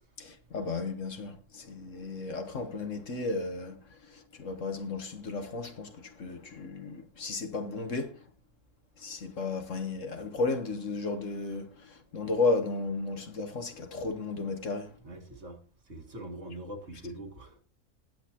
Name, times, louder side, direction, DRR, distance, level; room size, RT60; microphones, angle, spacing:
voice 1, 0.2-8.3 9.0-15.0, left 3 dB, 55° left, 1.4 m, -34 dB
voice 2, 15.0-17.6, right 1 dB, 45° right, 2.0 m, -43 dB
19.5 x 8.2 x 2.9 m
omnidirectional pair, 1.6 m